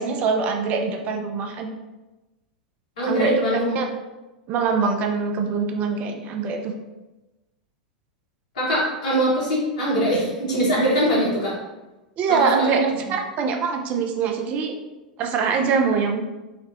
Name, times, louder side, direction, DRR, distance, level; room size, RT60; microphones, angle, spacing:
voice 1, 0.0-1.7 3.1-3.4 3.8-3.9 4.5-6.7 12.2-14.7 15.2-16.2, right 5 dB, 35° right, 4 dB, 0.4 m, -23 dB
voice 2, 3.0-3.7 8.5-11.6 12.3-12.8, right 1 dB, 60° left, -5 dB, 1.4 m, -22 dB
4.0 x 2.1 x 2.8 m, 1.1 s
figure-of-eight pair, 90°, 4 cm